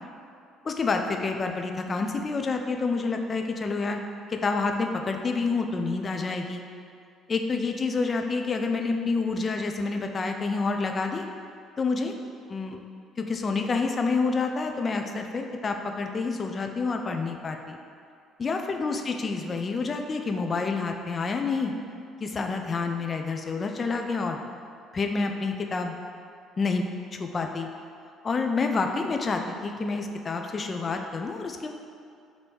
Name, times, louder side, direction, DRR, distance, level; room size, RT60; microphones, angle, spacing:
voice 1, 0.6-4.0 4.3-6.6 7.3-11.3 11.8-12.1 12.5-12.8 13.2-17.8 18.4-21.7 22.2-24.4 24.9-26.0 26.6-26.9 27.2-27.7 28.2-31.7, left 4 dB, 35° left, 4 dB, 0.4 m, -28 dB
3.4 x 2.6 x 4.4 m, 2.4 s
supercardioid pair, 70°, 0 cm